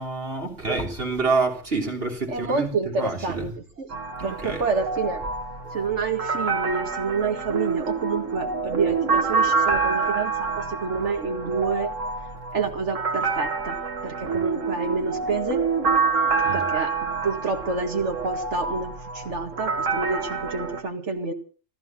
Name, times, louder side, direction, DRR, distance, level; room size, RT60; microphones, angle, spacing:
voice 1, 0.0-2.7 3.0-3.5 4.2-4.6 9.3-9.8 16.4-16.6, right 3 dB, 50° right, 3.6 m, -27 dB
voice 2, 2.3-3.9 4.2-5.3 5.7-11.9 12.5-13.8 14.0-15.6 16.5-21.3, right 4 dB, 65° right, 2.3 m, -28 dB
sound 1, 3.9-20.8, right 4 dB, 85° right, 2.3 m, -27 dB
14.5 x 13.5 x 6.1 m
omnidirectional pair, 1.3 m